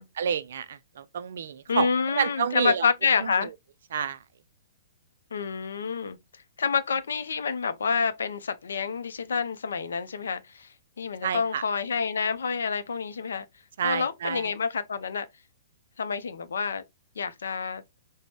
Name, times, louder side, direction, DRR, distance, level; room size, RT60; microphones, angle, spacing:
voice 1, 0.0-2.9 3.2-3.5 3.9-4.2 11.2-11.6 13.8-14.5, right 8 dB, 65° right, 0.3 m, -29 dB
voice 2, 1.7-3.5 5.3-6.2 6.6-10.7 11.0-13.4 13.8-15.3 16.0-16.8 17.2-17.8, left 5 dB, 70° left, 0.4 m, -28 dB
3.8 x 2.0 x 3.3 m
figure-of-eight pair, 120°, 0 cm